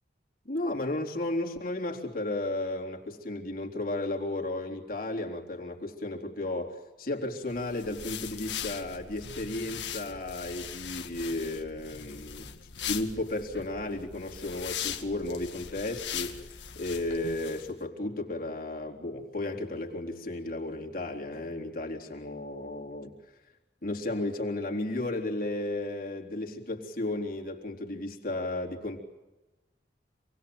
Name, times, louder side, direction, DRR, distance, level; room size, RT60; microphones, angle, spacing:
voice 1, 0.5-23.1 23.8-29.0, left 2 dB, 50° left, 1 dB, 3.7 m, -34 dB
sound 1, 7.5-17.7, left 9 dB, 85° left, 2.2 m, -40 dB
27.5 x 20.0 x 7.8 m, 1.1 s
head